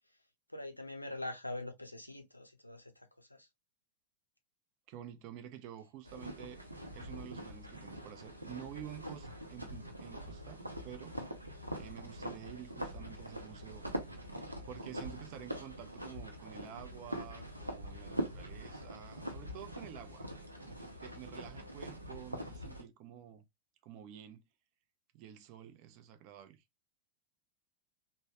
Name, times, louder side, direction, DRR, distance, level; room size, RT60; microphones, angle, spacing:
voice 1, 0.5-3.5, left 2 dB, 85° left, 0.5 m, -44 dB
voice 2, 4.9-6.6 6.9-11.2 11.8-13.8 14.6-20.3 20.6-23.4 23.8-24.4 25.1-26.6, right 10 dB, 45° right, 0.5 m, -50 dB
sound 1, 6.0-22.8, equal, 85° right, 0.6 m, -43 dB
3.1 x 2.1 x 2.6 m
figure-of-eight pair, 90°, 0 cm